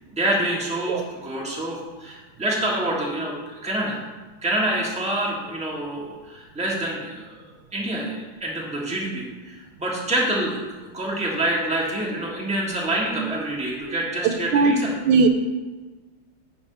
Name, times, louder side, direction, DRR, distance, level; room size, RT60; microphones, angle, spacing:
voice 1, 0.1-4.0 4.4-7.4 7.7-14.9, right 1 dB, 5° right, -4 dB, 1.4 m, -27 dB
voice 2, 0.9-1.0 14.5-14.7 15.0-15.3, right 4 dB, 75° right, 6 dB, 1.5 m, -17 dB
10.5 x 3.6 x 6.8 m, 1.3 s
omnidirectional pair, 2.4 m